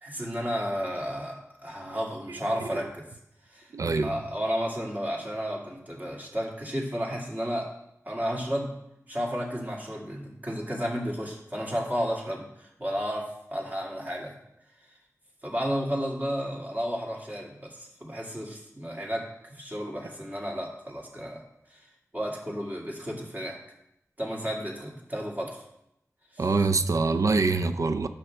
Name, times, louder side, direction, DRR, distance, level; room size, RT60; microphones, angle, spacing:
voice 1, 0.0-3.0 3.5-7.7 8.1-8.7 9.1-14.3 15.4-21.4 21.7-21.8 22.1-23.6 24.2-25.6 26.3-26.5, equal, 30° right, -2 dB, 2.0 m, -32 dB
voice 2, 3.7-4.2 26.4-28.1, right 3 dB, 70° right, 10 dB, 0.5 m, -25 dB
10.5 x 5.8 x 3.4 m, 0.82 s
wide cardioid pair, 75°, 6 cm